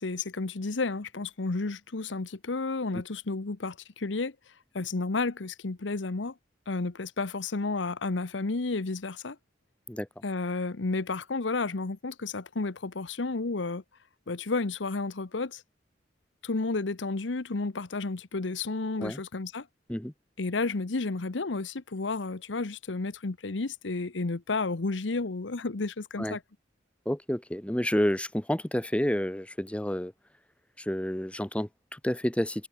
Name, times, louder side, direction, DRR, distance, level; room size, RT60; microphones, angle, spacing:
voice 1, 0.0-4.3 4.7-6.3 6.7-9.4 10.2-13.8 14.3-15.6 16.4-19.7 20.4-26.4, left 3 dB, 80° left, 0.9 m, -31 dB
voice 2, 27.0-30.1 30.8-32.7, equal, 5° left, 1.0 m, -29 dB
head